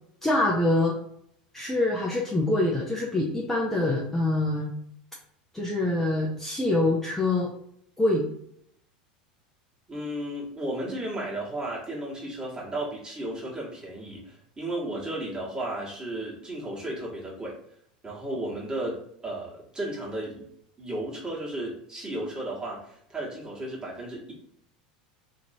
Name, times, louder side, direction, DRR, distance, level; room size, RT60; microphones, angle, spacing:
voice 1, 0.2-1.0 1.5-4.7 5.5-7.5 8.0-8.2, left 2 dB, 5° left, -3 dB, 0.6 m, -25 dB
voice 2, 9.9-17.5 18.0-20.5 20.8-24.3, right 1 dB, 20° right, -5 dB, 1.4 m, -34 dB
3.0 x 2.7 x 2.7 m, 0.69 s
hypercardioid pair, 90°, 4 cm